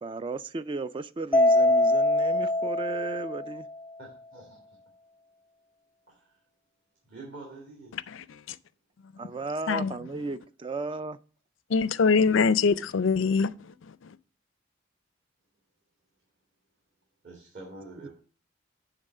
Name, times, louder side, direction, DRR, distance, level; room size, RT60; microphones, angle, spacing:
voice 1, 0.0-3.7 9.2-11.2, right 3 dB, 25° right, 0.3 m, -35 dB
Mallet percussion, 1.3-3.8, left 1 dB, 10° left, 0.6 m, -23 dB
voice 2, 4.0-4.6 6.1-6.4 7.0-8.0 17.2-18.1, right 2 dB, 45° right, 2.5 m, -46 dB
voice 3, 11.7-13.5, left 5 dB, 75° left, 0.4 m, -22 dB
9.8 x 3.7 x 6.6 m
head